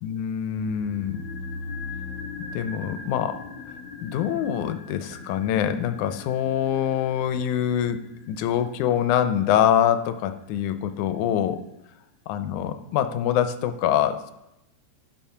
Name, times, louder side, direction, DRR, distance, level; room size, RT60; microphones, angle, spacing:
voice 1, 0.0-1.2 2.5-3.4 4.0-8.0 8.3-11.6 12.3-14.3, left 10 dB, 90° left, 10 dB, 2.1 m, -24 dB
sound 1, 0.6-10.9 11.2-11.3, left 4 dB, 60° left, 1.4 m, -40 dB
12.0 x 5.4 x 5.6 m, 0.88 s
omnidirectional pair, 3.4 m